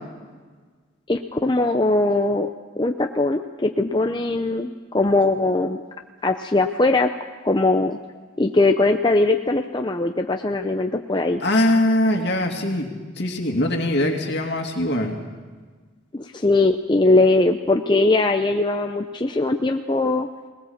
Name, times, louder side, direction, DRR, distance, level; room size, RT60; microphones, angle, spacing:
voice 1, 1.1-2.5 2.8-5.8 6.2-7.1 7.4-8.0 8.4-11.4 16.1-20.3, left 2 dB, 20° left, 5 dB, 0.6 m, -20 dB
voice 2, 11.4-12.9 13.2-15.1, left 1 dB, 55° left, 2 dB, 2.6 m, -21 dB
20.5 x 20.0 x 7.2 m, 1.5 s
head